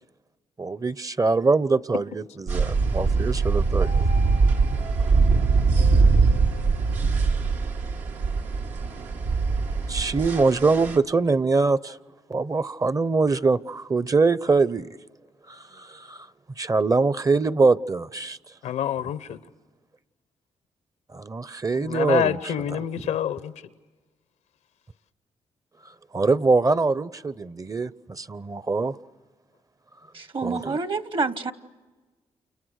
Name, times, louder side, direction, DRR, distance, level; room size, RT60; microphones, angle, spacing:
voice 1, 0.6-4.1 9.9-12.0 12.3-14.9 15.5-16.3 16.6-18.4 21.1-22.4 26.1-29.0 30.4-30.8, right 3 dB, 30° right, 0.7 m, -23 dB
sound 1, 2.5-11.0, right 4 dB, 85° right, 1.9 m, -22 dB
voice 2, 18.6-19.4 21.7-23.5, left 10 dB, 90° left, 0.9 m, -27 dB
voice 3, 30.1-31.5, right 4 dB, 45° right, 1.3 m, -28 dB
29.5 x 29.0 x 6.5 m
cardioid pair, 60°, 12 cm